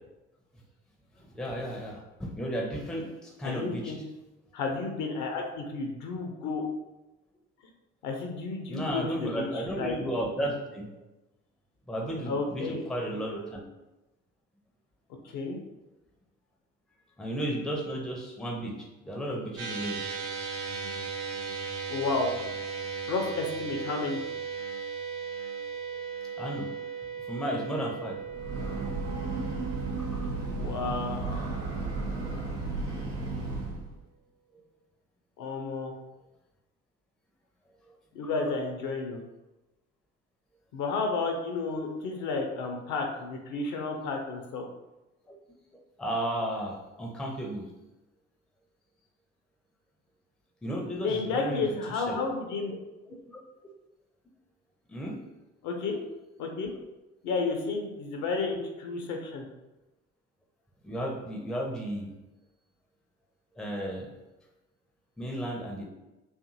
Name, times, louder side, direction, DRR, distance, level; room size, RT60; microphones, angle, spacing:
voice 1, 1.3-4.0 8.7-10.9 11.9-12.6 12.9-13.6 17.2-18.7 19.0-20.0 26.4-26.7 27.3-28.2 30.1-30.2 30.5-30.6 30.8-31.2 45.3-45.4 46.0-47.6 50.6-51.7 51.9-52.1 53.3-53.4 54.9-55.2 60.8-62.1 63.6-64.1 65.2-65.8, right 1 dB, ahead, 0 dB, 0.5 m, -33 dB
voice 2, 3.4-4.0 4.5-6.6 8.0-9.9 12.2-12.8 13.1-13.2 15.3-15.6 21.9-22.3 23.1-24.2 30.5-31.4 35.4-35.9 38.1-39.2 40.7-44.6 51.0-52.7 55.6-56.0 56.4-56.7 57.2-59.5, left 3 dB, 55° left, 3 dB, 0.6 m, -32 dB
sound 1, 19.6-32.1, right 5 dB, 40° right, 0.7 m, -37 dB
Breathing / Train, 28.2-33.9, right 3 dB, 90° right, 0.6 m, -33 dB
2.6 x 2.5 x 2.6 m, 1.0 s
figure-of-eight pair, 55°, 37 cm